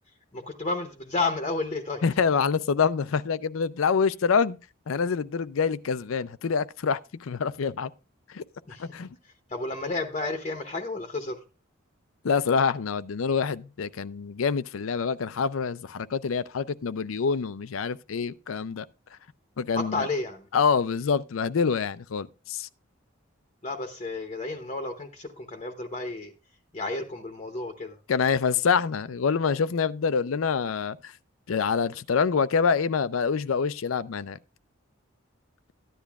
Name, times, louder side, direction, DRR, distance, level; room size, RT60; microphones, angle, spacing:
voice 1, 0.3-2.0 8.7-9.0 9.2-11.4 19.7-20.5 23.6-26.3 26.7-28.0, left 3 dB, 30° left, 0.9 m, -32 dB
voice 2, 2.0-4.6 4.9-7.9 8.3-8.4 8.8-9.1 12.2-18.8 19.6-20.1 20.5-22.7 28.1-31.1 31.5-34.4, left 6 dB, 85° left, 0.5 m, -26 dB
14.0 x 10.5 x 2.4 m
head